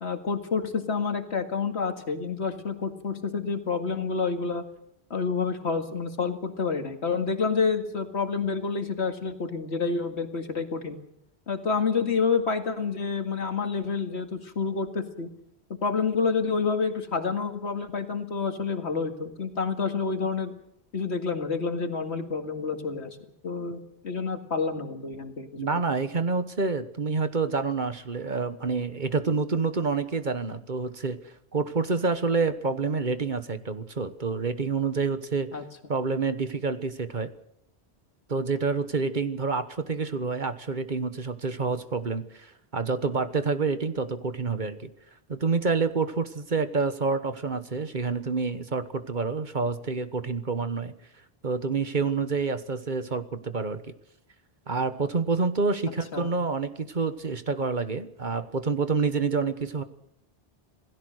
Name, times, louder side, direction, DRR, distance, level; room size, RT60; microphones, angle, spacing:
voice 1, 0.0-4.6 5.1-11.0 11.5-15.3 15.8-20.5 20.9-23.2 23.4-25.5 35.5-35.6 56.1-56.3, left 5 dB, 85° left, 6 dB, 2.3 m, -28 dB
voice 2, 25.6-31.2 31.5-35.5 35.9-37.3 38.3-44.9 45.3-50.9 51.4-53.8 54.7-59.8, right 4 dB, 45° right, 11 dB, 1.4 m, -28 dB
27.0 x 17.0 x 6.5 m, 0.76 s
omnidirectional pair, 1.1 m